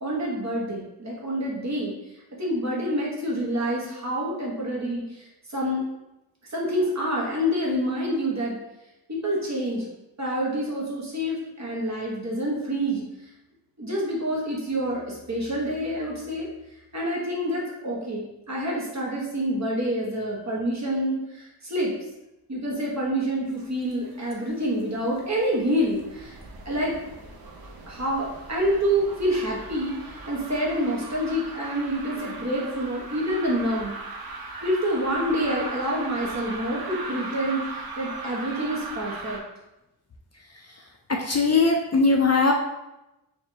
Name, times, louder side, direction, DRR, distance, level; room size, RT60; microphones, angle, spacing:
voice 1, 0.0-1.9 2.4-5.9 6.5-8.6 9.1-9.9 10.2-13.0 13.8-16.5 16.9-21.9 22.5-26.4 26.6-27.0 27.9-33.9 34.6-39.4, equal, 40° right, -4 dB, 1.1 m, -27 dB
sound 1, 23.5-24.4 24.7-39.4, right 3 dB, 60° right, 0.6 m, -38 dB
voice 2, 41.1-42.5, left 3 dB, 40° left, 1 dB, 0.4 m, -21 dB
4.7 x 2.6 x 2.7 m, 0.95 s
wide cardioid pair, 80°, 41 cm